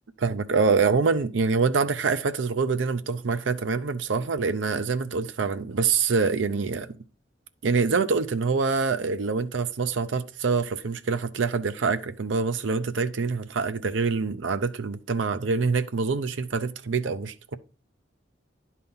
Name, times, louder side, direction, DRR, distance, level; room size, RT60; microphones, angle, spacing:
voice 1, 0.2-7.0 7.6-17.6, right 4 dB, 90° right, 0.6 m, -25 dB
10.5 x 4.1 x 5.5 m
head